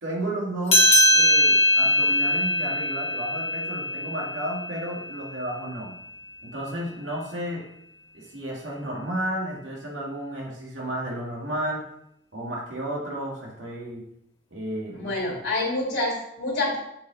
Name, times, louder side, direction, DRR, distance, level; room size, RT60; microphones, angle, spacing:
voice 1, 0.0-5.9 6.4-7.6 8.1-11.8 12.3-14.0 14.5-15.3, right 1 dB, 80° right, -3 dB, 2.3 m, -32 dB
sound 1, 0.7-5.6, left 1 dB, 30° left, 1.4 m, -22 dB
voice 2, 14.9-16.8, left 2 dB, 65° left, -6 dB, 3.1 m, -27 dB
7.2 x 4.8 x 4.1 m, 0.75 s
head